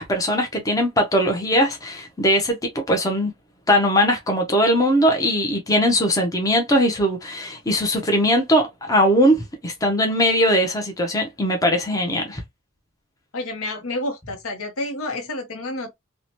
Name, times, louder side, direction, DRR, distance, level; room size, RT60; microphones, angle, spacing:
voice 1, 0.0-3.3 3.7-12.4, equal, 15° left, 0.5 m, -20 dB
voice 2, 13.3-15.9, left 2 dB, 75° left, 0.8 m, -29 dB
2.7 x 2.1 x 2.9 m
head